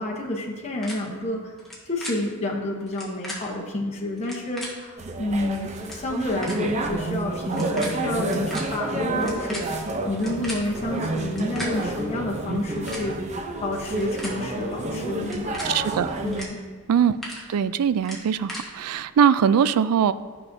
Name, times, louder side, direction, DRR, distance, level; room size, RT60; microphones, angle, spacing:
voice 1, 0.0-1.5 1.9-13.1 13.6-15.6 16.2-16.6, left 1 dB, 30° left, -2 dB, 0.8 m, -29 dB
sound 1, 0.8-0.9 1.6-2.1 2.9-3.4 4.2-4.7 5.5-5.6 5.8-6.0 6.4-6.6 7.4-7.9 8.2-8.6 9.2-10.6 11.2-11.7 12.5-13.0 13.8-14.3 15.2-15.7 16.3-16.5 16.8-17.4 18.0-18.6, left 1 dB, ahead, 1.3 m, -36 dB
sound 2, 5.0-16.4, right 2 dB, 30° right, 0.5 m, -29 dB
voice 2, 15.6-16.1 16.9-17.2 17.5-20.1, right 8 dB, 80° right, 14 dB, 0.3 m, -21 dB
11.5 x 5.8 x 2.6 m, 1.5 s
head